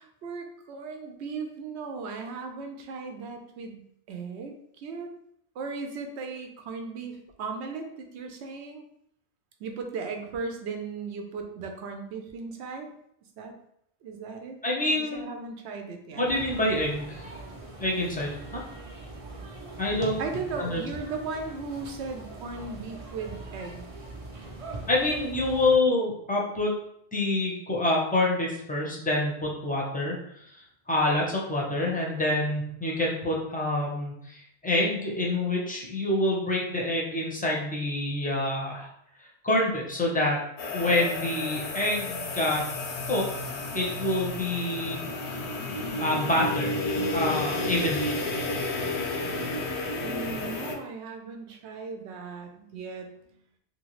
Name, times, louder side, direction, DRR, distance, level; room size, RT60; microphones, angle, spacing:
voice 1, 0.0-3.8 4.1-5.1 5.6-8.8 9.6-12.9 13.4-13.5 14.0-14.6 15.0-16.3 20.2-23.9 49.6-53.1, right 4 dB, 80° right, 4 dB, 0.9 m, -37 dB
voice 2, 14.6-15.2 16.2-17.3 17.8-18.6 19.8-20.2 20.6-20.8 24.9-26.7 27.1-38.9 39.2-40.4 40.7-42.7 43.1-43.3 43.7-45.4 46.0-48.1, left 1 dB, 10° left, -3 dB, 0.5 m, -27 dB
sound 1, 16.3-25.8, right 2 dB, 45° right, 0.5 m, -41 dB
sound 2, 40.6-50.8, left 2 dB, 80° left, 0.9 m, -31 dB
2.8 x 2.6 x 3.0 m, 0.71 s
omnidirectional pair, 1.1 m